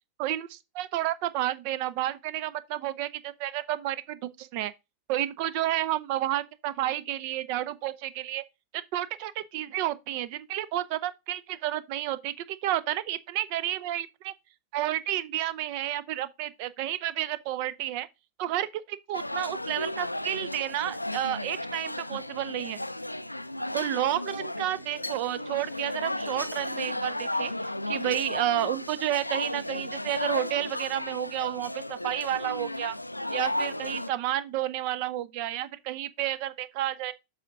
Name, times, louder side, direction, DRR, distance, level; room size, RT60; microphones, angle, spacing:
voice 1, 0.2-4.7 5.1-8.4 8.7-14.3 14.7-18.1 18.4-22.8 23.7-32.9 33.3-37.1, right 13 dB, 45° right, 0.7 m, -31 dB
sound 1, 19.1-34.1, left 1 dB, 85° left, 0.4 m, -34 dB
7.7 x 5.0 x 3.7 m
figure-of-eight pair, 90°, 0 cm